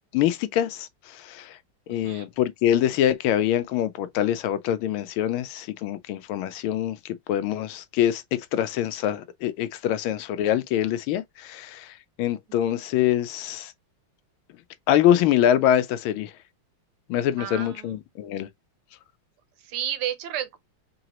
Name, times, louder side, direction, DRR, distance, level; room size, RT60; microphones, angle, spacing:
voice 1, 0.1-1.6 1.9-13.7 14.9-16.3 17.1-18.5, left 11 dB, 80° left, 1.3 m, -24 dB
voice 2, 1.9-2.3 12.7-12.8 17.4-18.0 19.6-20.6, right 10 dB, 80° right, 1.7 m, -32 dB
3.9 x 3.4 x 2.9 m
omnidirectional pair, 2.4 m